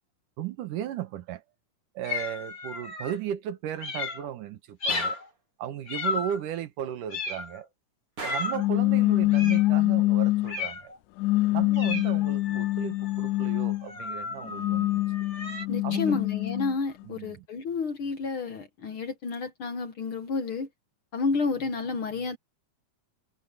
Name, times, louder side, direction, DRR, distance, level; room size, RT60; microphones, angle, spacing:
voice 1, 0.4-1.4 1.9-5.2 5.6-7.7 8.2-10.9 11.5-14.9 15.8-16.2 17.0-17.5, right 10 dB, 85° right, 2.8 m, -35 dB
sound 1, 2.0-3.2 3.8-4.3 4.8-5.3 5.9-6.5 7.1-7.6 8.2-8.7 9.3-9.7 10.5-11.0 11.7-15.7, left 4 dB, 35° left, 4.3 m, -34 dB
Gunshot gunfire, 4.9-5.3 8.2-8.6, right 4 dB, 45° right, 4.7 m, -38 dB
sound 2, 8.5-10.6 11.2-13.9 14.4-16.7, left 18 dB, 85° left, 2.2 m, -25 dB
voice 2, 15.7-20.7 21.1-22.4, left 4 dB, 55° left, 1.7 m, -30 dB
omnidirectional pair, 3.6 m